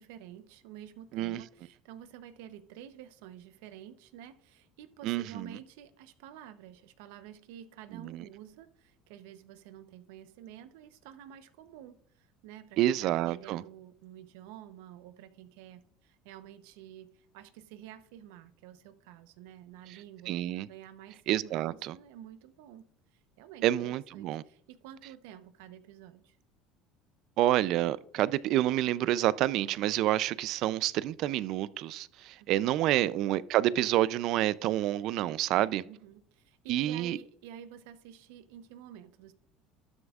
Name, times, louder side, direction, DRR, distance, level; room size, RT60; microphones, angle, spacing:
voice 1, 0.0-20.3 20.7-22.9 23.4-26.4 32.4-32.5 35.9-39.3, right 10 dB, 85° right, 0.8 m, -50 dB
voice 2, 5.0-5.6 7.9-8.2 12.8-13.6 19.9-20.0 20.3-20.7 21.3-22.0 23.6-24.4 27.4-35.8 36.7-37.2, right 14 dB, 60° right, 0.4 m, -28 dB
12.5 x 9.7 x 2.4 m
supercardioid pair, 125°, 0 cm